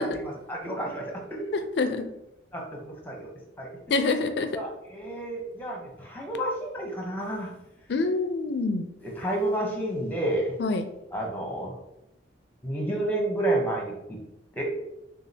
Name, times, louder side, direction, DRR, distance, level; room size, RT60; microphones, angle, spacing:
voice 1, 0.0-1.4 2.5-3.3 3.6-3.7 4.5-7.5 9.0-10.5 11.1-11.7 12.6-14.2 14.6-14.7, right 1 dB, 10° left, 0 dB, 0.8 m, -30 dB
voice 2, 1.8-2.1 3.9-4.5 7.9-8.9 10.6-10.8, left 3 dB, 65° left, 8 dB, 0.4 m, -26 dB
6.2 x 2.4 x 2.7 m, 0.88 s
head